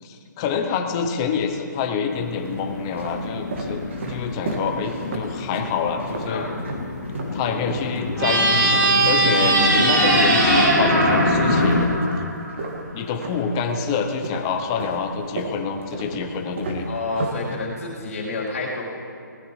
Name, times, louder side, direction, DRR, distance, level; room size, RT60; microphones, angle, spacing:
voice 1, 0.0-3.8 4.1-6.5 7.3-8.7 9.0-11.8 12.9-16.9, left 6 dB, 15° left, 5 dB, 0.5 m, -27 dB
sound 1, 0.9-1.6 2.3-7.4 7.7-13.9 14.2-17.9, right 2 dB, 40° right, 1.7 m, -33 dB
sound 2, 2.1-11.9, left 3 dB, 65° left, 2.5 m, -27 dB
sound 3, 8.2-12.6, right 2 dB, 85° right, 3.2 m, -19 dB
voice 2, 16.8-18.8, left 3 dB, 45° left, -4 dB, 3.3 m, -29 dB
19.0 x 14.0 x 3.1 m, 2.5 s
hypercardioid pair, 170°, 10 cm